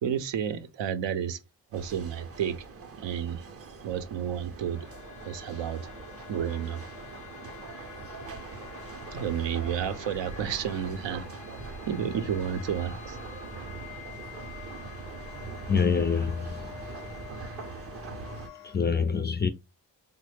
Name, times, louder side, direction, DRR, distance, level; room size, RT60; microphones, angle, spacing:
voice 1, 0.0-1.4 1.7-2.6 3.0-3.4 3.8-4.9 5.3-5.8 6.3-6.8 9.1-11.3 11.9-13.2, right 8 dB, 75° right, 0.6 m, -31 dB
sound 1, 1.7-18.5, right 4 dB, 35° right, 0.6 m, -42 dB
sound 2, 4.2-18.8, left 9 dB, 85° left, 0.7 m, -47 dB
voice 2, 15.7-16.9 18.6-19.5, left 6 dB, 25° left, 0.4 m, -26 dB
3.2 x 2.0 x 3.2 m
cardioid pair, 55°, 44 cm